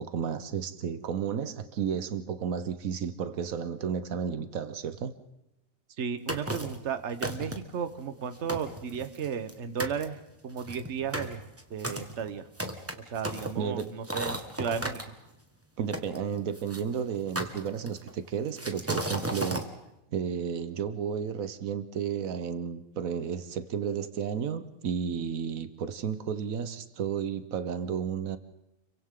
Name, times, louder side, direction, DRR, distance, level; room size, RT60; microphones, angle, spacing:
voice 1, 0.0-5.1 13.6-14.0 15.8-19.6 20.1-28.4, right 7 dB, 80° right, 1.3 m, -32 dB
voice 2, 6.0-11.4 11.7-12.5 13.1-15.1, right 7 dB, 55° right, 1.3 m, -34 dB
sound 1, 6.3-6.8 7.2-7.8 8.2-8.3 8.5-9.5 9.8-10.0 10.6-15.0 15.9-16.8 17.4-18.1 18.6-19.7, right 1 dB, 10° right, 1.5 m, -34 dB
30.0 x 24.0 x 3.8 m
omnidirectional pair, 1.4 m